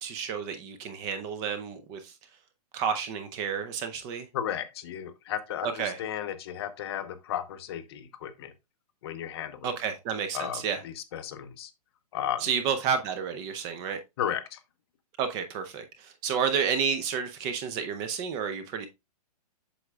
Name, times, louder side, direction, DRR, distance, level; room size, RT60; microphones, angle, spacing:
voice 1, 0.0-2.1 2.7-4.3 5.6-6.0 9.6-10.8 12.4-14.0 15.2-18.9, right 7 dB, 20° right, 0.5 m, -30 dB
voice 2, 4.3-8.5 9.0-9.7 10.3-11.7 12.1-12.4 14.2-14.6, left 10 dB, 40° left, 0.8 m, -34 dB
8.0 x 6.2 x 2.3 m
hypercardioid pair, 160°, 20 cm